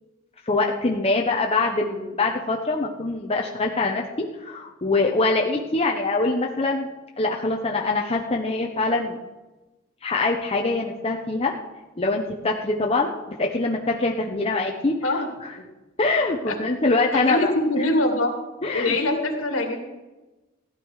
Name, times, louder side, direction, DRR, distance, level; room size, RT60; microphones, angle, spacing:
voice 1, 0.5-6.9 7.2-9.2 10.0-11.5 12.0-15.2 16.0-17.5 17.8-17.9 18.6-18.9, left 3 dB, 30° left, 1 dB, 0.9 m, -24 dB
voice 2, 17.1-18.3 18.7-19.8, left 2 dB, 75° left, 2 dB, 2.7 m, -23 dB
16.0 x 11.0 x 4.8 m, 1.1 s
head